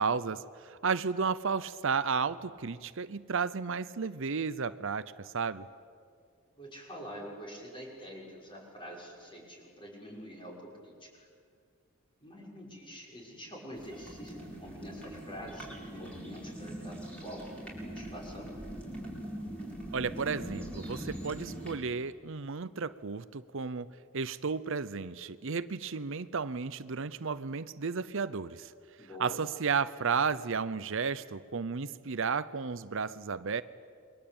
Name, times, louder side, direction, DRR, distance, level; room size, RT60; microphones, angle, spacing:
voice 1, 0.0-5.7 19.9-23.9 24.1-28.7 29.2-33.6, right 5 dB, 65° right, 14 dB, 0.7 m, -33 dB
voice 2, 6.6-11.3 12.2-18.6 29.0-29.4, equal, 25° left, -1 dB, 6.4 m, -46 dB
sound 1, 13.7-21.8, right 1 dB, 5° left, 6.3 m, -42 dB
29.0 x 23.0 x 8.8 m, 2.2 s
head